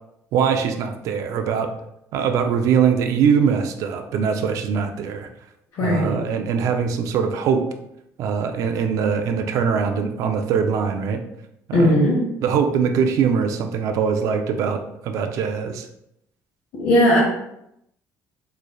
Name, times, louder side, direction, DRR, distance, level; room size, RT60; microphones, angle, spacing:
voice 1, 0.3-1.7 2.1-5.3 5.8-7.6 8.2-11.2 11.7-11.9 12.4-15.9, right 6 dB, 60° right, 6 dB, 0.4 m, -22 dB
voice 2, 5.7-6.2 11.7-12.2 16.7-17.2, equal, 60° left, -6 dB, 1.0 m, -17 dB
3.9 x 3.1 x 2.3 m, 0.80 s
cardioid pair, 150°, 6 cm